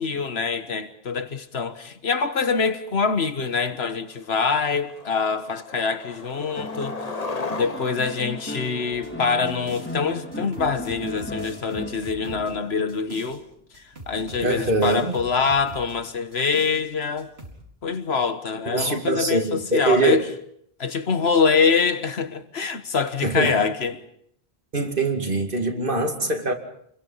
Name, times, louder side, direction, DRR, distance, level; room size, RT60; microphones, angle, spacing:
voice 1, 0.0-7.2 7.5-13.4 13.7-17.3 17.8-20.2 20.8-24.0, left 5 dB, 85° left, 1.6 m, -25 dB
Skateboard, 3.7-3.8 4.2-4.5 4.8-9.5, left 3 dB, 40° left, 1.4 m, -36 dB
sound 1, 6.5-13.0 14.5-14.6, left 1 dB, 10° left, 2.3 m, -36 dB
sound 2, 8.9-10.0 10.3-13.4 13.7-16.0 16.3-16.8 17.2-17.6, right 2 dB, 90° right, 4.7 m, -43 dB
voice 2, 14.4-15.1 18.7-20.2 23.2-23.6 24.7-26.5, right 2 dB, 55° right, 2.6 m, -23 dB
28.5 x 22.0 x 5.6 m
omnidirectional pair, 1.0 m